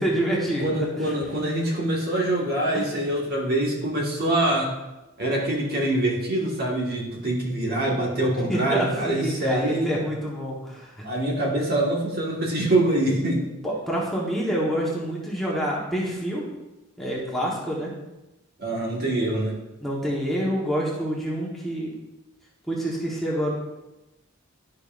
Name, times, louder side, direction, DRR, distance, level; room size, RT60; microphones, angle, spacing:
voice 1, 0.0-1.1 2.7-2.8 8.5-11.1 13.6-16.5 17.0-17.9 19.8-21.9 22.7-23.5, equal, ahead, -5 dB, 1.2 m, -27 dB
voice 2, 0.6-4.7 5.2-10.0 11.0-13.4 18.6-19.5, right 1 dB, 45° right, -3 dB, 1.7 m, -24 dB
11.5 x 5.3 x 2.5 m, 1.0 s
head